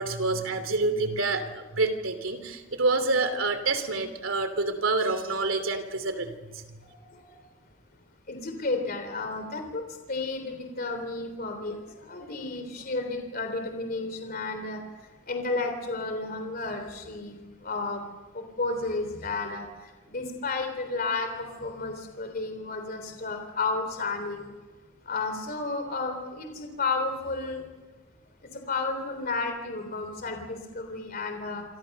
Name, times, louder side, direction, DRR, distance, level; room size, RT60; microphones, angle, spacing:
voice 1, 0.0-6.8, right 3 dB, 80° right, 9 dB, 2.9 m, -27 dB
voice 2, 6.8-7.3 8.3-9.8 10.1-11.8 12.1-14.8 15.3-17.4 17.6-18.0 18.3-19.7 20.1-24.4 25.1-27.6 28.7-31.6, left 3 dB, 45° left, 5 dB, 3.4 m, -32 dB
27.0 x 26.5 x 6.7 m, 1.2 s
head